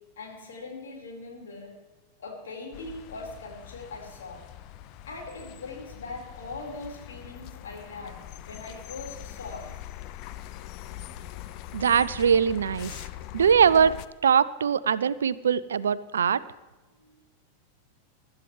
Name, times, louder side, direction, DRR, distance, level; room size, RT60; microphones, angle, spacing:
voice 1, 0.2-1.8 2.2-4.4 5.0-9.8 17.0-17.2, left 3 dB, 60° left, -1 dB, 4.7 m, -41 dB
sound 1, 2.7-14.1, left 13 dB, 40° left, 0.6 m, -43 dB
voice 2, 11.7-13.0 13.3-13.9 14.2-16.4, right 7 dB, 65° right, 18 dB, 0.5 m, -22 dB
23.5 x 12.5 x 3.3 m, 1.1 s
figure-of-eight pair, 90°, 0 cm